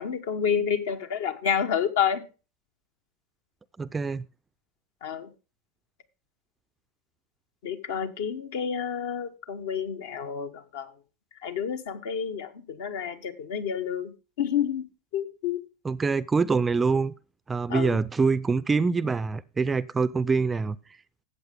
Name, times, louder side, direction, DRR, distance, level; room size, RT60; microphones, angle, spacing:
voice 1, 0.0-2.2 5.0-5.3 7.6-10.9 11.4-14.9 15.1-15.6 17.7-18.0, left 8 dB, 60° left, 1.1 m, -29 dB
voice 2, 3.8-4.3 15.8-17.1 17.5-20.8, right 4 dB, 15° right, 0.4 m, -25 dB
13.5 x 8.1 x 3.5 m
figure-of-eight pair, 85°, 0 cm